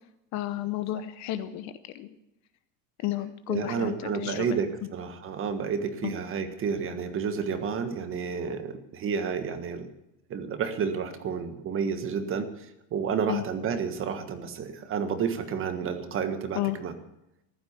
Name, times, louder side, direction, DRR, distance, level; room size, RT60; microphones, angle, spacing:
voice 1, 0.3-2.2 3.0-4.6 6.0-6.1 13.3-13.4 16.6-16.8, left 14 dB, 35° left, 12 dB, 0.8 m, -32 dB
voice 2, 3.5-9.9 10.3-16.9, right 6 dB, 25° right, 10 dB, 1.5 m, -30 dB
15.0 x 12.0 x 8.1 m, 0.87 s
supercardioid pair, 160°, 49 cm